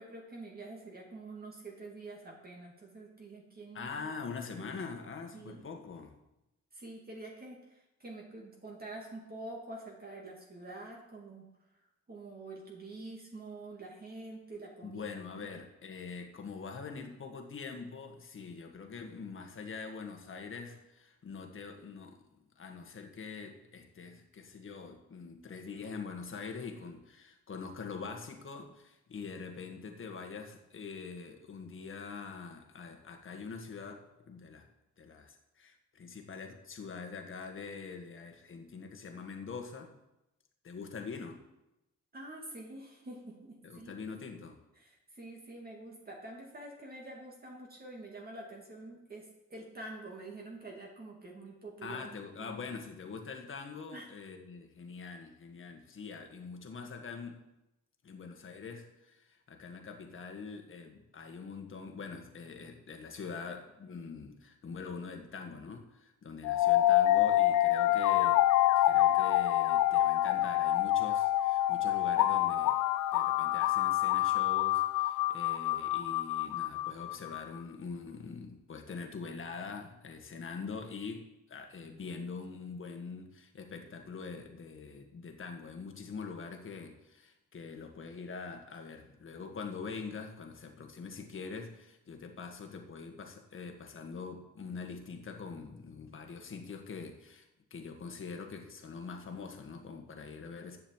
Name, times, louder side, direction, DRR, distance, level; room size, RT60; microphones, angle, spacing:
voice 1, 0.0-4.1 4.6-4.8 5.3-5.6 6.7-11.4 12.1-15.1 15.4-15.5 42.1-44.0 44.8-52.5 53.9-54.1, right 2 dB, 30° right, -1 dB, 2.7 m, -47 dB
voice 2, 3.7-6.1 14.8-22.2 22.6-34.7 35.0-39.9 40.6-41.4 43.6-44.6 51.8-57.4 58.0-68.4 68.8-72.8 73.1-100.8, left 5 dB, 40° left, 4 dB, 1.8 m, -44 dB
sound 1, 66.4-77.4, left 14 dB, 85° left, 0.5 m, -27 dB
8.8 x 7.7 x 7.4 m, 0.93 s
cardioid pair, 90°, 30 cm